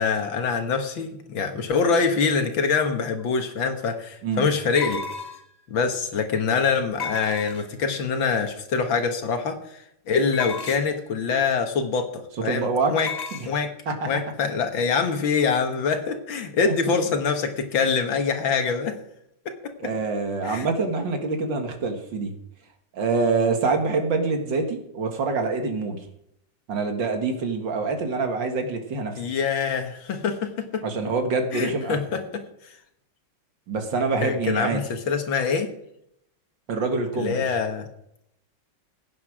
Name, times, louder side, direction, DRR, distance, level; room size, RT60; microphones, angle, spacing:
voice 1, 0.0-5.0 5.7-13.1 13.4-13.7 14.1-19.0 19.5-19.9 20.4-20.7 29.2-30.9 31.5-32.7 34.2-35.7 37.1-37.9, left 5 dB, 85° left, 6 dB, 2.3 m, -25 dB
sound 1, 3.2-3.3 4.8-5.6 7.0-7.9 10.3-11.0 13.0-13.5, left 5 dB, 40° left, 0.6 m, -34 dB
voice 2, 12.4-13.0 13.3-13.5 13.9-14.1 16.7-16.8 19.8-22.3 22.9-26.0 26.7-29.2 30.8-32.0 33.7-34.8 36.7-37.4, right 4 dB, 70° right, 5 dB, 2.4 m, -25 dB
16.5 x 9.3 x 5.0 m, 0.77 s
omnidirectional pair, 2.1 m